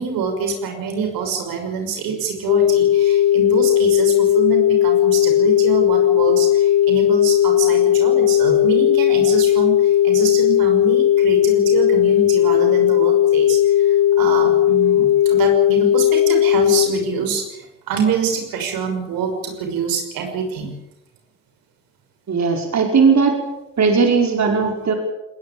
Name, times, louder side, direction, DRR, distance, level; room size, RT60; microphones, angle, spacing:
voice 1, 0.0-20.7, right 6 dB, 70° right, 4 dB, 6.0 m, -25 dB
sound 1, 2.5-16.9, left 11 dB, 55° left, 2.1 m, -16 dB
voice 2, 22.3-23.4 23.8-24.9, right 5 dB, 50° right, 3 dB, 5.3 m, -17 dB
20.5 x 20.5 x 8.7 m, 0.89 s
hypercardioid pair, 55°, 36 cm